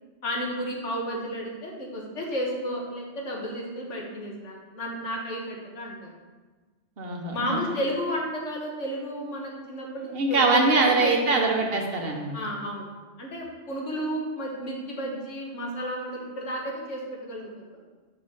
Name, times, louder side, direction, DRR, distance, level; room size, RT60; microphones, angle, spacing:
voice 1, 0.2-6.1 7.3-11.4 12.3-12.9 13.2-17.8, equal, 75° left, -1 dB, 1.7 m, -32 dB
voice 2, 7.0-7.6 10.1-12.4, right 3 dB, 55° right, 1 dB, 1.3 m, -23 dB
6.4 x 4.2 x 6.4 m, 1.3 s
omnidirectional pair, 1.2 m